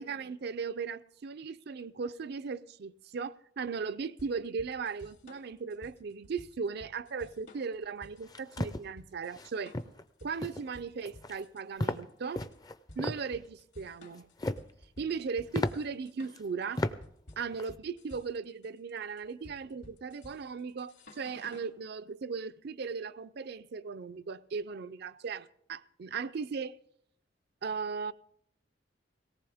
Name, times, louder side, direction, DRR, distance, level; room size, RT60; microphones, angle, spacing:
voice 1, 0.0-9.7 10.2-12.4 13.0-14.3 15.0-16.8 17.4-26.7 27.6-28.1, right 5 dB, 60° right, 0.5 m, -37 dB
sound 1, 4.2-21.7, left 1 dB, 75° left, 2.8 m, -54 dB
sound 2, 8.2-8.8 9.3-9.5 9.7-10.0 10.4-10.7 11.0-11.4 11.8-12.0 12.3-13.2 14.1-14.7 15.1-15.2 15.5-15.7 16.3-16.4 16.8-16.9 17.3-17.7, left 1 dB, 20° left, 0.5 m, -34 dB
17.5 x 17.5 x 3.5 m
head